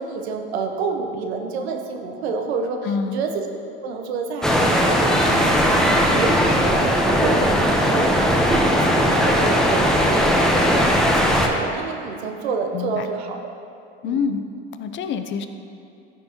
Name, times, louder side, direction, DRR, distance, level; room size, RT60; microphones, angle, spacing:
voice 1, 0.0-3.5 3.8-13.5 14.0-14.2, right 4 dB, 75° right, 4 dB, 1.0 m, -29 dB
voice 2, 2.8-3.2 12.7-13.1 14.0-14.4 14.7-15.5, left 6 dB, 35° left, 8 dB, 0.6 m, -26 dB
sound 1, 4.4-11.5, equal, ahead, 0.9 m, -18 dB
13.5 x 5.4 x 2.9 m, 2.5 s
hypercardioid pair, 85°, 32 cm